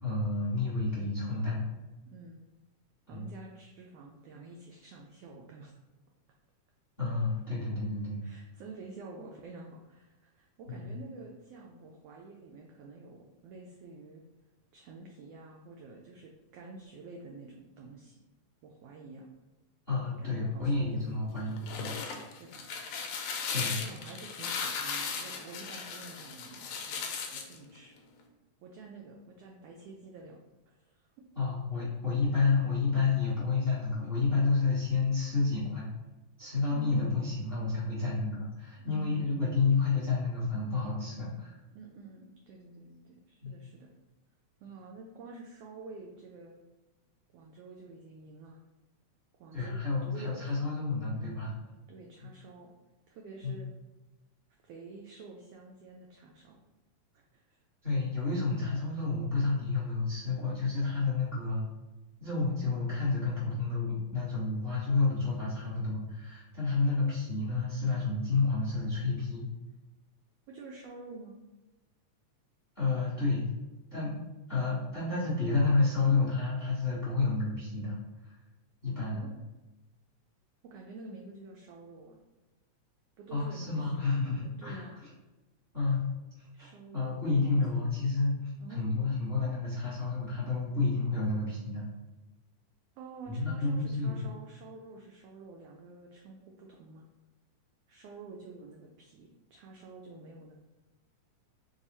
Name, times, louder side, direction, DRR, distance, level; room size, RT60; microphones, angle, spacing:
voice 1, 0.0-1.7 3.1-3.3 7.0-8.2 10.7-10.9 19.9-21.9 23.5-23.8 31.3-35.9 36.4-41.5 43.4-43.5 49.5-51.5 53.4-53.6 57.8-61.6 62.2-69.5 72.7-73.4 73.9-74.1 74.5-78.0 78.2-78.3 78.8-79.3 83.3-84.9 85.7-86.1 86.4-86.7 86.9-88.4 88.7-91.8 93.3-94.2, left 3 dB, 30° left, -9 dB, 1.0 m, -30 dB
voice 2, 2.0-2.5 3.1-5.7 8.2-14.2 14.7-18.2 18.6-19.3 20.2-21.0 22.4-22.7 23.6-27.9 28.6-31.1 36.7-37.4 38.8-39.4 41.7-43.9 44.6-46.6 47.3-48.6 49.4-50.6 51.9-52.7 53.1-53.7 54.6-56.6 57.1-57.6 60.9-61.0 70.5-71.4 79.1-79.3 80.6-82.2 83.2-85.0 86.5-87.2 87.5-87.6 88.6-88.9 93.0-97.1 97.9-100.5, right 3 dB, 85° right, 0 dB, 1.4 m, -49 dB
sound 1, 21.4-27.6, left 5 dB, 75° left, 1.8 m, -37 dB
4.8 x 2.4 x 4.1 m, 1.1 s
omnidirectional pair, 3.3 m